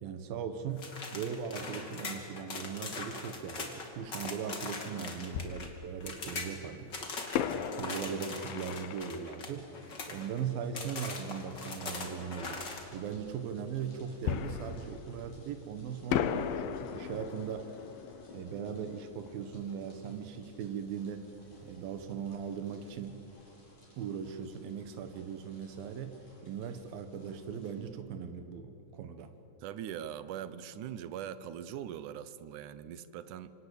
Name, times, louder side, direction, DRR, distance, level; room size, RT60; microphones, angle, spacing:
voice 1, 0.0-6.9 7.5-9.7 10.1-12.7 12.9-17.7 18.3-21.3 21.6-23.2 24.0-26.2 26.4-29.3, right 7 dB, 90° right, 8 dB, 3.1 m, -39 dB
sound 1, 0.8-5.7 6.0-6.5 6.9-10.4 10.7-12.8, left 3 dB, 35° left, 2.9 m, -41 dB
Fireworks, 4.0-4.1 5.3-6.5 7.3-10.8 14.3-15.7 16.1-20.7 20.9-21.0 21.5-21.7, left 9 dB, 85° left, 2.8 m, -38 dB
sound 2, 9.6-27.7, left 1 dB, 60° left, 9.2 m, -59 dB
voice 2, 29.6-33.5, right 10 dB, 70° right, 14 dB, 2.2 m, -41 dB
26.5 x 26.5 x 8.4 m, 2.9 s
omnidirectional pair, 4.0 m